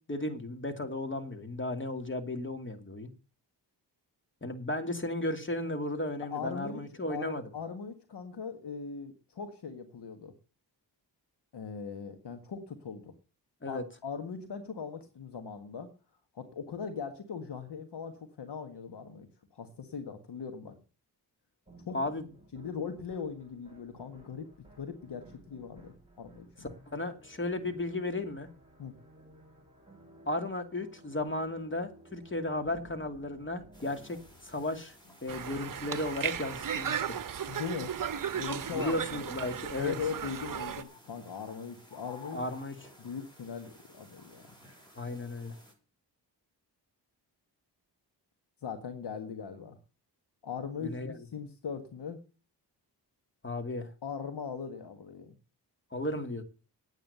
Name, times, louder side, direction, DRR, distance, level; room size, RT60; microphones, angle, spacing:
voice 1, 0.1-3.1 4.4-7.4 13.6-13.8 21.9-22.2 26.9-28.5 30.3-34.2 34.4-34.9 35.2-37.2 38.7-40.0 42.3-42.7 45.0-45.5 50.8-51.1 53.4-53.9 55.9-56.4, left 2 dB, 25° left, 7 dB, 2.5 m, -34 dB
voice 2, 6.2-6.8 7.1-10.3 11.5-13.1 13.7-15.9 16.3-20.8 21.9-22.0 22.5-24.5 24.8-26.5 28.8-28.9 37.5-37.9 38.3-39.3 39.8-42.4 43.0-44.4 48.6-49.8 50.4-52.2 54.0-55.4, left 6 dB, 70° left, 7 dB, 1.7 m, -40 dB
sound 1, 21.7-35.3, right 1 dB, 10° right, 6.7 m, -57 dB
sound 2, 33.7-45.7, left 1 dB, 10° left, 6.0 m, -54 dB
Conversation, 35.3-40.8, right 8 dB, 50° right, 0.9 m, -36 dB
9.2 x 9.0 x 6.7 m, 0.35 s
cardioid pair, 70°, 43 cm